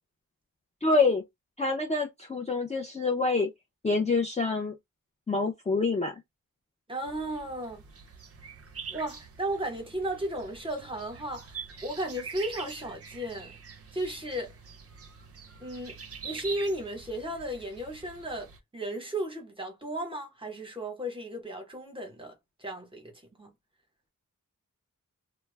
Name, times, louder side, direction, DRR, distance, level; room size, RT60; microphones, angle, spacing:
voice 1, 0.8-1.2 1.6-3.5 3.8-4.7 5.3-6.1, left 3 dB, 20° left, 0.4 m, -26 dB
voice 2, 6.9-7.8 8.9-13.6 13.9-14.5 15.6-23.1 23.4-23.5, right 1 dB, 15° right, 0.9 m, -35 dB
sound 1, 7.0-18.6, right 5 dB, 45° right, 0.5 m, -45 dB
2.2 x 2.0 x 3.2 m
wide cardioid pair, 105°, 34 cm